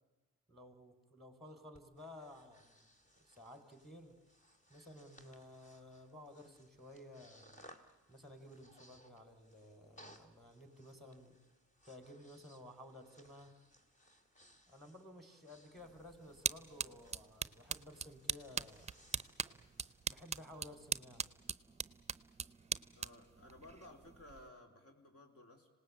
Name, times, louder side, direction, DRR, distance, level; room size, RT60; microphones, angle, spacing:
voice 1, 0.5-2.7 3.2-4.2 4.7-7.7 8.1-11.4 11.8-13.5 14.7-18.9 20.1-21.3, left 1 dB, ahead, 8 dB, 4.4 m, -55 dB
Breathing, 1.7-20.4, equal, 25° left, 2.6 m, -65 dB
sound 1, 15.8-24.5, right 6 dB, 20° right, 0.7 m, -43 dB
voice 2, 22.9-25.7, left 1 dB, 50° left, 5 dB, 4.3 m, -57 dB
26.0 x 19.0 x 8.8 m, 1.1 s
cardioid pair, 90°, 30 cm